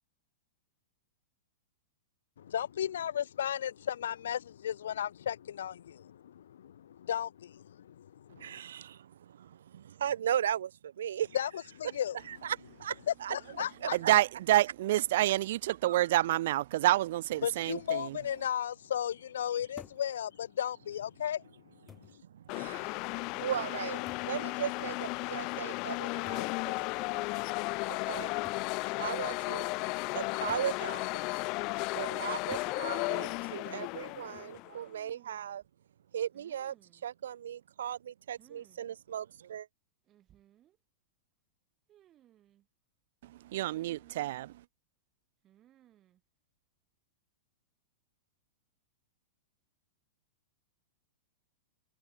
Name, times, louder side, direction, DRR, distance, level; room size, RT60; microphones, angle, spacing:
voice 1, 2.4-8.6 11.3-11.5 11.7-12.2 13.1-14.0 17.4-21.4, left 10 dB, 80° left, 1.2 m, -35 dB
voice 2, 8.4-11.4 12.3-13.4 13.8-14.1 15.8-16.0 22.0-27.4 27.9-28.3 29.0-29.8 30.1-31.2 31.9-35.6 36.1-36.7 37.0-39.7, right 9 dB, 80° right, 0.9 m, -37 dB
voice 3, 13.9-18.2 43.2-44.6, right 15 dB, 45° right, 0.7 m, -28 dB
sound 1, 19.8-20.1 21.1-21.2 21.9-22.2 24.1-24.4 26.3-26.5 27.6-27.7 28.4-28.7 30.5-30.8 32.5-32.8 34.4-34.7, left 6 dB, 10° left, 1.5 m, -52 dB
sound 2, 22.5-34.8, left 27 dB, 30° left, 0.8 m, -35 dB
sound 3, 32.8-33.5 34.8-35.7 36.3-37.1 38.3-38.8 39.1-39.2 40.1-40.8 41.9-42.7 43.7-44.5 45.4-46.2, right 12 dB, 20° right, 7.0 m, -63 dB
supercardioid pair, 175°, 0 cm